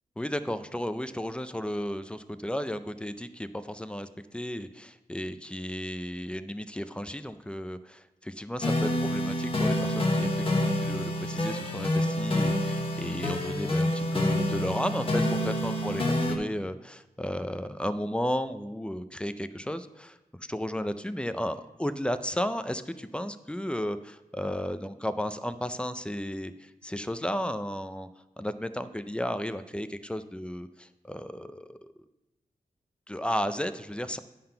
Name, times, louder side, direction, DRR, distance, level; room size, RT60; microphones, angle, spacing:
voice 1, 0.2-16.0 16.3-20.2 20.5-28.1 28.4-31.8 33.1-34.2, equal, 5° left, 11 dB, 0.3 m, -34 dB
sound 1, 8.6-16.4, left 1 dB, 35° left, 0.9 m, -27 dB
10.5 x 3.8 x 5.5 m, 1.0 s
wide cardioid pair, 135°, 15 cm